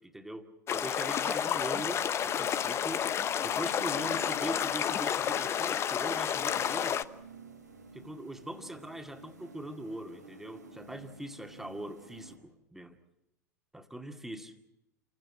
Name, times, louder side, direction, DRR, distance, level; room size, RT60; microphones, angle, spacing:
voice 1, 0.0-3.0 3.4-7.1 7.9-12.4 12.7-13.0 13.7-14.5, right 1 dB, 5° right, 6 dB, 2.1 m, -41 dB
sound 1, 0.7-7.0, left 9 dB, 30° left, 0.8 m, -30 dB
sound 2, 1.4-12.4, right 3 dB, 90° right, 4.2 m, -52 dB
27.5 x 16.0 x 8.6 m, 0.92 s
figure-of-eight pair, 85°, 9 cm